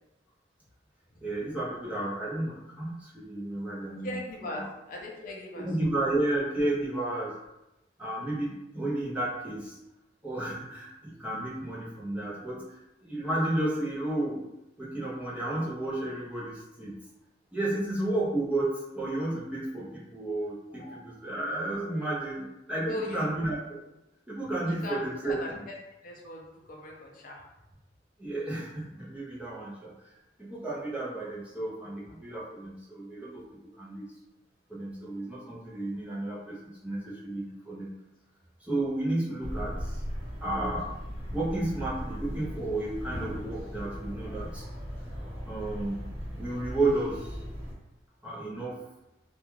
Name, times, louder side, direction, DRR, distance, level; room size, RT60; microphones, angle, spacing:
voice 1, 1.2-4.1 5.6-7.3 8.0-9.8 10.2-14.4 14.8-16.9 17.5-23.8 24.3-25.6 28.2-30.1 30.4-33.4 33.8-34.1 34.7-37.9 38.6-40.0 40.4-40.9 41.3-44.6 45.5-46.0 46.4-47.4 48.2-48.8, right 2 dB, 5° right, -7 dB, 0.6 m, -32 dB
voice 2, 4.0-5.7 20.7-21.0 21.9-22.0 22.7-23.4 24.7-27.5, left 1 dB, 50° left, -1 dB, 0.5 m, -39 dB
sound 1, 39.4-47.7, equal, 85° right, 0.8 m, -38 dB
2.3 x 2.2 x 3.0 m, 0.93 s
head